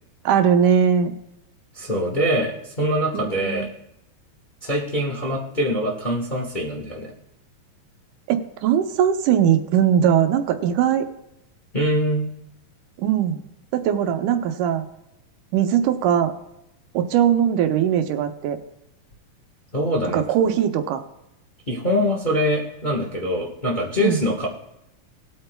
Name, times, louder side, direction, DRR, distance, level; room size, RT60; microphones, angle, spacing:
voice 1, 0.3-1.2 3.1-3.7 8.3-11.1 13.0-13.4 13.7-14.9 15.5-16.3 16.9-18.6 20.1-21.0 24.0-24.2, right 9 dB, 85° right, 6 dB, 2.4 m, -20 dB
voice 2, 1.7-3.7 4.6-7.1 11.7-12.3 19.7-20.2 21.7-24.5, equal, 35° left, -2 dB, 0.8 m, -23 dB
19.0 x 8.8 x 2.3 m, 0.84 s
omnidirectional pair, 3.5 m